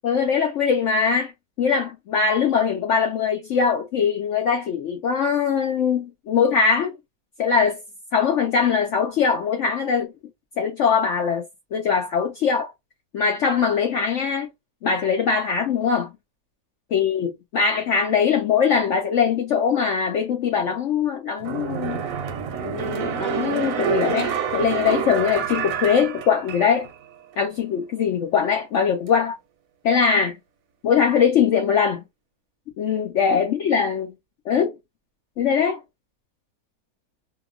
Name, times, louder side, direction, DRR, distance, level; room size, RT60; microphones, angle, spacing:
voice 1, 0.0-1.3 1.6-6.9 7.4-7.8 8.1-10.1 10.6-11.4 11.7-12.7 13.1-14.5 14.8-16.1 16.9-22.0 22.6-26.9 27.4-29.4 29.8-30.4 30.8-32.0 32.8-34.1 34.5-34.7 35.4-35.8, left 6 dB, 70° left, 0.7 m, -21 dB
sound 1, 21.4-27.0 27.3-27.4, right 7 dB, 65° right, 0.9 m, -27 dB
2.8 x 2.2 x 2.4 m
omnidirectional pair, 1.8 m